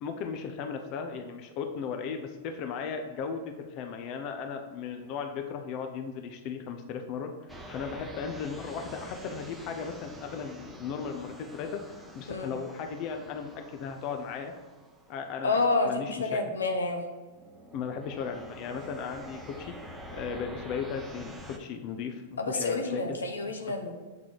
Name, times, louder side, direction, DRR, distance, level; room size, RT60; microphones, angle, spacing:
voice 1, 0.0-14.5 15.1-15.6 15.8-16.4 17.7-19.7 20.1-23.2, left 6 dB, 45° left, 5 dB, 0.7 m, -36 dB
sound 1, 7.5-15.8 16.5-16.8 17.3-21.6, equal, 5° right, 0.9 m, -47 dB
voice 2, 15.4-17.0 22.4-23.9, left 3 dB, 85° left, 5 dB, 0.9 m, -29 dB
7.5 x 3.9 x 4.6 m, 1.4 s
hypercardioid pair, 105°, 0 cm